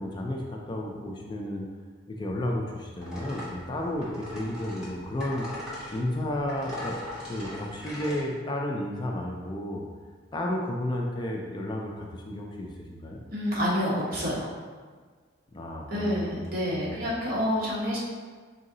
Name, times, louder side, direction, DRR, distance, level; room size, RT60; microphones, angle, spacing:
voice 1, 0.0-1.7 2.1-5.5 5.9-7.0 7.3-9.9 10.3-13.2 15.5-17.1, left 1 dB, 25° left, 0 dB, 0.4 m, -32 dB
sound 1, 3.0-8.2, left 1 dB, 5° right, 1.1 m, -40 dB
voice 2, 13.3-14.5 15.9-18.0, equal, 50° right, -6 dB, 1.2 m, -28 dB
3.9 x 2.7 x 3.8 m, 1.5 s
head